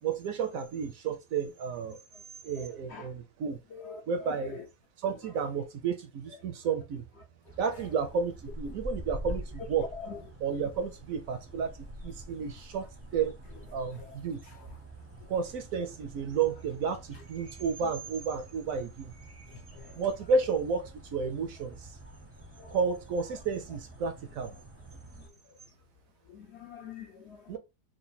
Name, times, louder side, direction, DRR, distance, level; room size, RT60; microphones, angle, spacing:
voice 1, 0.0-2.0 2.4-3.6 4.1-4.6 5.0-7.0 7.6-9.9 10.4-12.9 13.1-13.4 13.7-14.4 15.3-19.1 19.9-22.0 22.7-24.5 27.5-27.6, right 5 dB, 70° right, 0.9 m, -32 dB
voice 2, 3.7-4.0 4.4-4.6 10.0-10.2 13.9-14.2 19.7-20.0 22.6-22.8 26.3-27.5, left 6 dB, 65° left, 0.7 m, -44 dB
sound 1, 7.5-25.3, right 1 dB, 15° right, 0.5 m, -46 dB
3.4 x 2.4 x 3.9 m
omnidirectional pair, 1.7 m